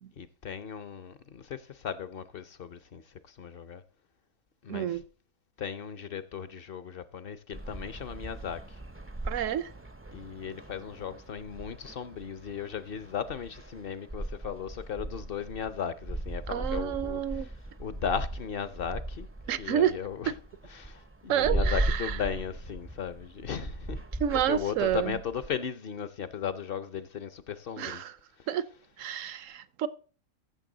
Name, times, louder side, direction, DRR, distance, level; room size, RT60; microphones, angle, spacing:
voice 1, 0.2-3.8 4.6-5.0 5.6-8.8 10.1-20.3 20.7-24.0 24.3-28.1 28.4-28.5, left 7 dB, 55° left, 0.7 m, -37 dB
voice 2, 4.7-5.0 9.2-9.7 16.5-17.5 19.5-19.9 20.3-20.4 21.3-22.1 24.2-25.2 27.8-28.1 28.5-28.6 29.0-29.9, right 10 dB, 70° right, 1.0 m, -29 dB
sound 1, 7.5-25.5, right 1 dB, 20° right, 0.4 m, -38 dB
14.5 x 6.7 x 3.9 m
omnidirectional pair, 1.4 m